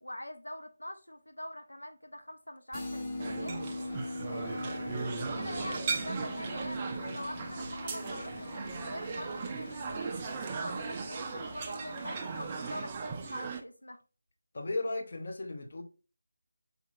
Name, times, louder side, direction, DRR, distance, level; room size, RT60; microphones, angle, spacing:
voice 1, 0.0-3.6 4.2-10.1 10.6-14.0, left 1 dB, 85° left, 0.6 m, -44 dB
sound 1, 2.7-12.4, left 2 dB, 15° left, 1.0 m, -42 dB
sound 2, 3.2-13.6, right 5 dB, 20° right, 0.4 m, -38 dB
Truck, 3.4-12.8, left 1 dB, 65° left, 1.2 m, -50 dB
voice 2, 14.5-15.8, left 2 dB, 45° left, 0.7 m, -35 dB
4.3 x 4.0 x 2.4 m
figure-of-eight pair, 160°, 0 cm